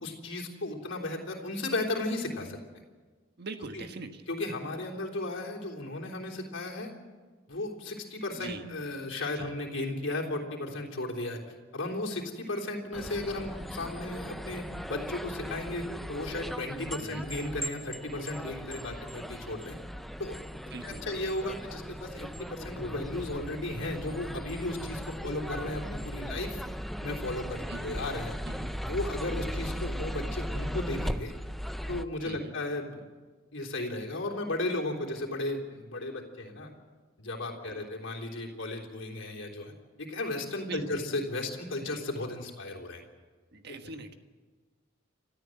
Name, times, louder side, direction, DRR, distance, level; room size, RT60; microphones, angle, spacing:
voice 1, 0.0-2.6 3.7-3.8 4.3-6.9 7.5-11.4 11.7-19.8 20.2-20.4 20.8-26.6 27.0-28.3 28.8-31.3 31.9-33.0 33.5-36.7 37.2-39.7 40.0-43.0 43.7-43.8, left 2 dB, 65° left, 0 dB, 3.5 m, -35 dB
voice 2, 3.4-4.2 8.4-8.7 9.3-9.5 17.0-17.2 20.7-21.2 27.7-28.0 28.4-28.7 32.2-32.5 37.6-37.9 40.7-41.0 43.5-44.1, right 3 dB, 55° right, 7 dB, 1.5 m, -42 dB
sound 1, 12.9-32.0, equal, ahead, 0.5 m, -38 dB
29.5 x 13.0 x 7.8 m, 1.4 s
head